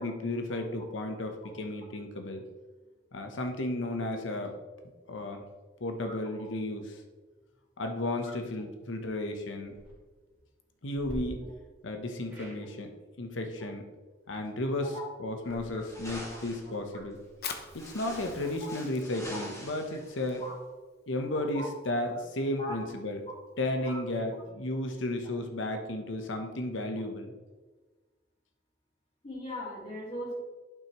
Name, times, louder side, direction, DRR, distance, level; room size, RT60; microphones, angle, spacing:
voice 1, 0.0-2.4 3.1-4.5 5.1-5.4 5.8-7.0 7.8-9.8 10.8-11.5 11.8-12.9 13.2-13.8 14.3-17.2 17.7-20.4 21.1-23.2 23.6-27.3, left 1 dB, 85° left, 5 dB, 0.9 m, -33 dB
sound 1, 9.6-9.9 10.9-11.2 12.3-12.6 15.3-18.2, equal, 15° right, 2.5 m, -50 dB
sound 2, 15.8-16.7 17.4-20.5, equal, 20° left, 1.9 m, -45 dB
Fire, 17.3-24.5, left 7 dB, 55° left, 0.8 m, -48 dB
voice 2, 21.3-21.7 22.6-22.8 23.3-23.4 23.8-24.0 29.2-30.3, left 1 dB, 35° left, -7 dB, 2.3 m, -40 dB
11.0 x 5.8 x 3.1 m, 1.3 s
head